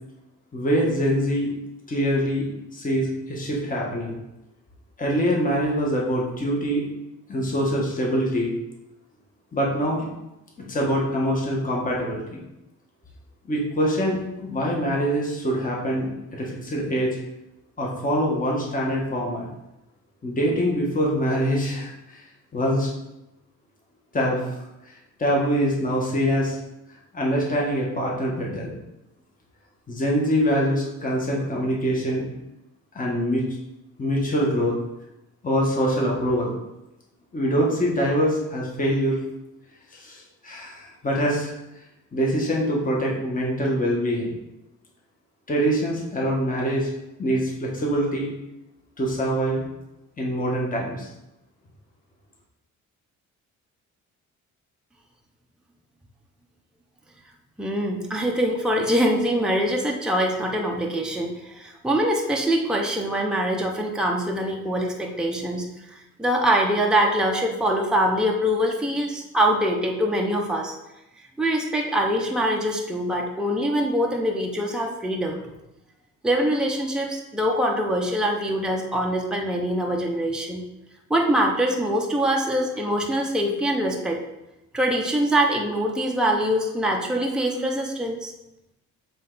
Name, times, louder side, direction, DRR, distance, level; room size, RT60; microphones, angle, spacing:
voice 1, 0.5-1.5 1.9-4.1 5.0-6.8 7.3-8.5 9.5-10.0 10.7-12.4 13.5-17.1 17.8-19.5 20.2-22.2 22.5-22.9 24.1-24.5 25.2-26.6 27.1-28.8 29.9-32.3 32.9-33.4 34.0-34.7 35.4-36.5 37.3-39.2 39.9-41.5 42.1-44.3 45.5-46.9 47.2-48.3 49.0-49.6 50.2-51.1, equal, 25° left, -3 dB, 1.6 m, -24 dB
voice 2, 57.6-70.7 71.4-75.4 76.2-80.6 81.1-84.2 84.7-88.3, equal, 5° right, 0 dB, 0.8 m, -24 dB
7.3 x 3.3 x 4.0 m, 0.93 s
cardioid pair, 90°, 30 cm